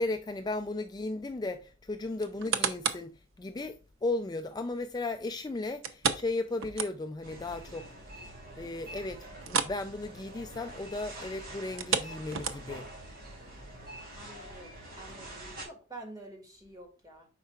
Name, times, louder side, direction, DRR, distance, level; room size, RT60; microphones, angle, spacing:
voice 1, 0.0-7.8 8.6-12.9, left 2 dB, 20° left, 0.4 m, -35 dB
sound 1, 2.2-3.1 3.6-3.7 5.8-7.3 7.6-7.7 8.2-8.3 9.4-9.8 10.1-10.3 11.6-12.9 13.5-13.6, right 6 dB, 85° right, 0.8 m, -32 dB
sound 2, 7.2-15.7, right 1 dB, 50° right, 3.1 m, -46 dB
voice 2, 14.2-17.3, right 2 dB, 20° right, 2.2 m, -48 dB
9.1 x 5.5 x 2.4 m
head